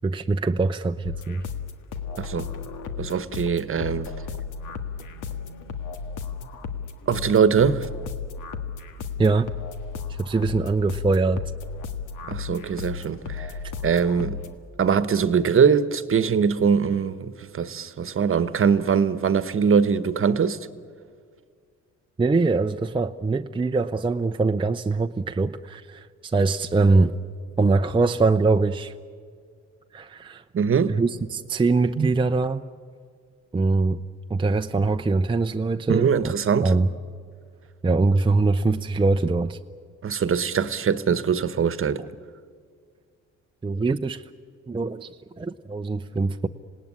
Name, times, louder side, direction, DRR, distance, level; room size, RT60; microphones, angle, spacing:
voice 1, 0.0-1.4 9.2-9.5 10.2-11.4 22.2-27.1 27.6-28.9 29.9-30.4 30.9-32.6 33.5-34.0 34.3-36.3 36.6-36.9 37.8-39.6 43.6-44.2 44.7-45.1 45.4-46.5, right 3 dB, 15° right, 0.6 m, -23 dB
sound 1, 1.0-14.5, left 6 dB, 85° left, 1.8 m, -34 dB
voice 2, 2.2-2.5 3.0-4.1 7.1-7.9 12.2-13.5 13.8-14.4 14.8-20.7 27.0-27.1 30.5-31.0 32.0-32.1 35.9-36.7 40.0-42.0, right 6 dB, 45° right, 1.2 m, -22 dB
26.5 x 18.5 x 9.8 m
cardioid pair, 90°, 30 cm